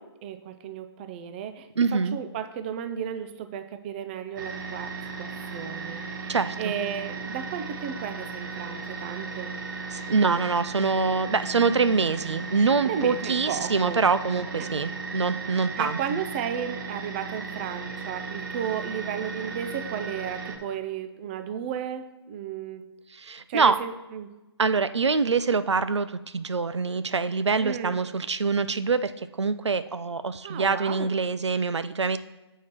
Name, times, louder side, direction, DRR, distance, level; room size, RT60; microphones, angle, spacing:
voice 1, 0.0-9.6 12.8-14.1 14.5-14.8 15.5-22.8 23.5-24.3 27.6-28.0 30.4-31.1, right 8 dB, 25° right, 10 dB, 0.4 m, -34 dB
voice 2, 1.8-2.2 6.3-6.6 9.9-16.2 23.2-23.8 24.6-29.1 29.4-32.2, right 4 dB, 85° right, 13 dB, 0.4 m, -25 dB
sound 1, 4.4-20.6, right 4 dB, 45° right, 1.0 m, -36 dB
7.0 x 4.6 x 4.4 m, 1.1 s
figure-of-eight pair, 140°, 14 cm